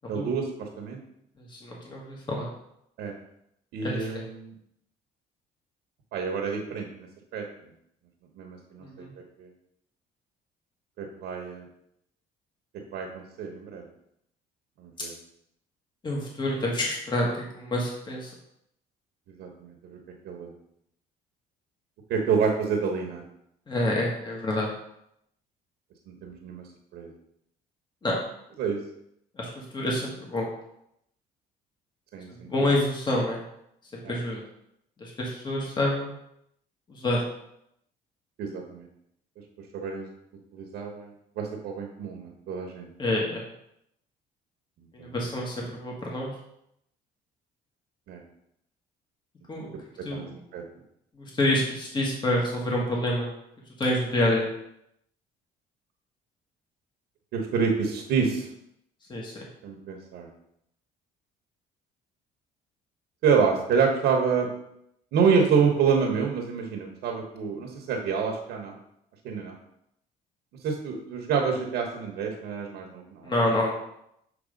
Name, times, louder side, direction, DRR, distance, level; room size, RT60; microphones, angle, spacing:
voice 1, 0.1-1.0 3.0-3.1 3.7-4.5 6.1-7.4 8.3-9.1 9.4-9.5 11.0-11.7 12.9-13.8 14.8-15.1 19.4-20.0 20.2-20.5 22.1-23.2 26.1-26.7 26.9-27.1 28.6-28.8 32.1-32.8 34.0-34.2 38.4-38.9 39.7-40.1 40.5-42.9 44.8-45.7 48.1-48.2 50.1-50.6 57.3-58.5 59.6-60.3 63.2-64.5 65.1-68.7 69.2-69.5 70.6-73.7, right 6 dB, 80° right, 2 dB, 1.1 m, -28 dB
voice 2, 1.5-2.5 3.8-4.1 8.8-9.1 16.0-18.3 23.7-24.7 28.0-28.1 29.4-30.5 32.4-33.4 33.9-34.4 35.0-36.1 36.9-37.2 43.0-43.4 44.9-46.3 49.5-49.7 50.0-50.3 51.2-53.3 53.8-54.5 59.1-59.4 73.2-73.7, left 1 dB, 25° left, -2 dB, 1.5 m, -27 dB
7.2 x 3.3 x 5.2 m, 0.77 s
cardioid pair, 110°, 17 cm